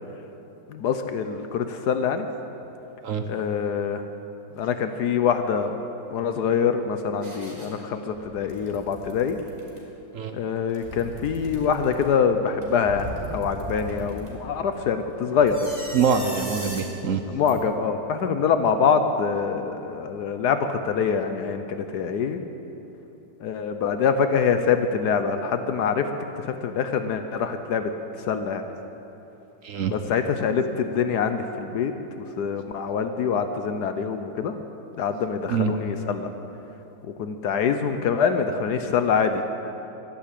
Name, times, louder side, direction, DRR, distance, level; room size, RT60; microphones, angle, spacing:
voice 1, 0.7-2.3 3.3-4.0 4.5-5.8 6.1-9.4 10.3-15.7 17.3-22.4 23.4-26.1 26.4-27.9 28.2-28.7 29.9-31.9 32.2-34.6 35.0-36.3 37.0-39.4, left 6 dB, 70° left, 8 dB, 1.2 m, -25 dB
sound 1, 7.2-7.7 8.1-9.8 10.6-12.0 12.6-14.3 15.4-16.8 17.5-17.6, equal, 20° right, 2.9 m, -38 dB
voice 2, 15.9-17.2 29.6-29.9 35.5-35.7, right 6 dB, 60° right, 7 dB, 1.0 m, -24 dB
12.5 x 11.5 x 8.5 m, 3.0 s
omnidirectional pair, 1.9 m